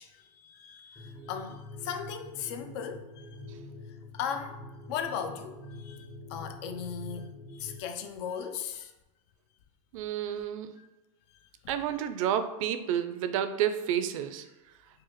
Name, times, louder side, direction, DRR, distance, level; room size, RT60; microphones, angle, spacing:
voice 1, 0.0-3.4 4.1-4.6 4.9-8.9 10.3-10.4 10.8-10.9, left 7 dB, 55° left, 0.4 m, -38 dB
sound 1, 1.0-7.8, left 2 dB, 10° left, 0.7 m, -45 dB
voice 2, 9.9-10.7 11.7-14.4, right 9 dB, 75° right, 0.4 m, -30 dB
4.7 x 2.4 x 2.9 m
supercardioid pair, 160°, 17 cm